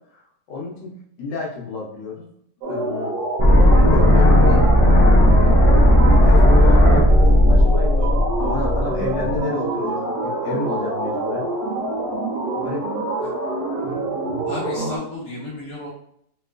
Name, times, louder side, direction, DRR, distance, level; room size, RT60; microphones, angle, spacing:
voice 1, 0.5-0.9 1.2-2.3 2.7-3.2 3.5-4.6 5.3-8.0 8.4-11.5 12.6-12.8, left 4 dB, 80° left, -4 dB, 1.5 m, -29 dB
sound 1, 2.6-15.0, right 2 dB, 65° right, 1.3 m, -26 dB
sound 2, 3.4-9.4, equal, 50° left, 0.3 m, -14 dB
voice 2, 14.5-15.9, left 2 dB, 20° left, -8 dB, 1.3 m, -33 dB
3.3 x 3.0 x 2.4 m, 0.68 s
omnidirectional pair, 1.9 m